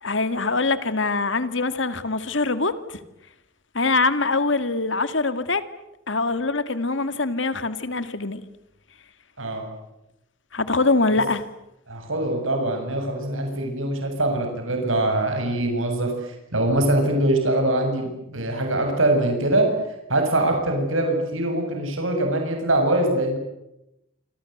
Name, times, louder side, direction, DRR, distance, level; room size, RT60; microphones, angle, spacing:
voice 1, 0.0-3.0 3.7-5.6 6.1-8.4 10.5-11.4, left 3 dB, 65° left, 11 dB, 2.2 m, -23 dB
voice 2, 11.9-19.7 20.1-23.4, right 1 dB, 85° right, 4 dB, 7.4 m, -23 dB
27.5 x 27.0 x 8.0 m, 0.87 s
head